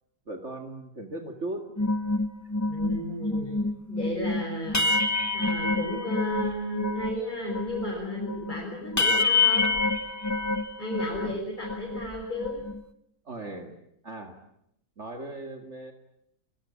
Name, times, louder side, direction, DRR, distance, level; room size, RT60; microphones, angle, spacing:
voice 1, 0.3-1.7 11.2-11.4 13.2-13.8 14.0-14.4 15.0-15.9, right 2 dB, 45° right, 4 dB, 2.5 m, -38 dB
sound 1, 1.8-7.2 7.5-11.3 11.6-12.8, left 3 dB, 15° left, 0.9 m, -27 dB
voice 2, 2.7-4.9 5.3-9.7 10.8-12.6, left 1 dB, 30° left, -2 dB, 6.8 m, -34 dB
27.5 x 22.0 x 8.9 m, 0.76 s
omnidirectional pair, 1.7 m